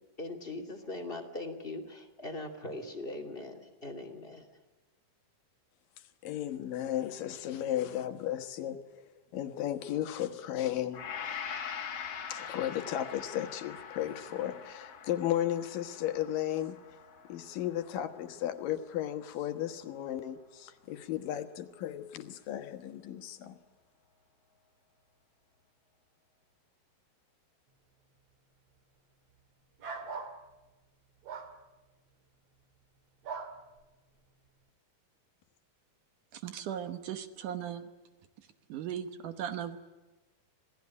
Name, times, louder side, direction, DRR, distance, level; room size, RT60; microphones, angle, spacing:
voice 1, 0.2-4.6, left 2 dB, 15° left, 3 dB, 2.4 m, -41 dB
voice 2, 6.2-9.0 9.3-11.0 11.3-11.4 12.3-16.8 17.3-23.6, left 12 dB, 75° left, 8 dB, 2.9 m, -35 dB
Gong, 10.9-19.2 19.7-19.9, left 7 dB, 45° left, 2.6 m, -43 dB
sound 1, 29.8-30.4 31.3-31.5 33.2-33.5, right 5 dB, 50° right, 2.7 m, -39 dB
voice 3, 36.3-37.9 38.7-39.8, right 9 dB, 65° right, 10 dB, 2.5 m, -37 dB
27.5 x 18.0 x 9.6 m, 1.2 s
omnidirectional pair, 4.1 m